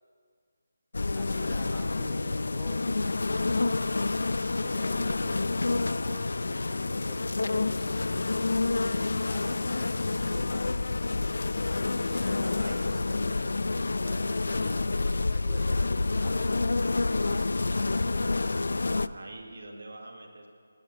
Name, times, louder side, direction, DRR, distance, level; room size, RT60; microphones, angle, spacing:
sound 1, 0.9-19.1, left 3 dB, 75° left, 0.3 m, -28 dB
voice 1, 1.1-2.8 4.6-7.9 9.2-10.7 11.8-17.5, equal, ahead, -3 dB, 0.8 m, -51 dB
voice 2, 12.4-13.0 18.9-20.5, right 2 dB, 80° right, 2 dB, 2.2 m, -44 dB
18.5 x 6.9 x 6.4 m, 2.1 s
figure-of-eight pair, 170°, 0 cm